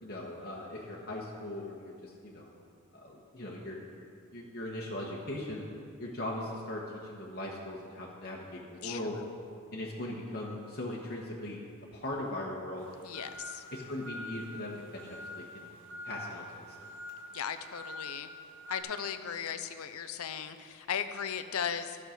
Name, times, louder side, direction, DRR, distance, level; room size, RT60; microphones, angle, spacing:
voice 1, 0.0-2.5 2.9-5.6 6.0-9.2 9.7-11.6 11.9-12.9 13.7-15.0 15.3-15.7 16.0-16.7, left 1 dB, 45° left, -4 dB, 1.3 m, -39 dB
sound 1, 12.8-18.8, left 1 dB, 55° right, 1.2 m, -45 dB
voice 2, 13.0-13.6 17.3-18.3 18.7-22.0, left 7 dB, 75° left, 10 dB, 0.6 m, -37 dB
12.5 x 6.6 x 5.2 m, 2.3 s
head